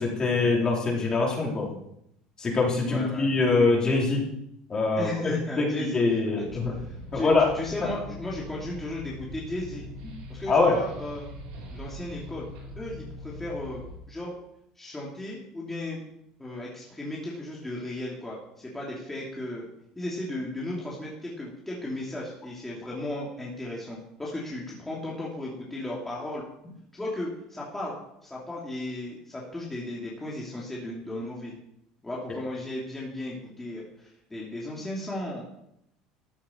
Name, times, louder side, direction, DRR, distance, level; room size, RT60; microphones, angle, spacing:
voice 1, 0.0-1.7 2.4-4.2 4.7-5.6 5.9-6.7 7.1-7.5 10.5-10.8, left 3 dB, 30° left, -2 dB, 4.4 m, -23 dB
voice 2, 2.8-3.3 5.0-6.0 6.3-6.5 6.8-9.8 10.3-11.3 11.7-12.5 12.8-14.3 14.7-16.0 16.4-19.7 19.9-26.4 26.9-27.9 28.2-31.5 32.0-35.4, left 1 dB, 10° left, -5 dB, 3.2 m, -35 dB
sound 1, 6.5-14.0, left 1 dB, 75° right, 4.6 m, -42 dB
14.0 x 8.4 x 4.7 m, 0.77 s
supercardioid pair, 95°, 2 cm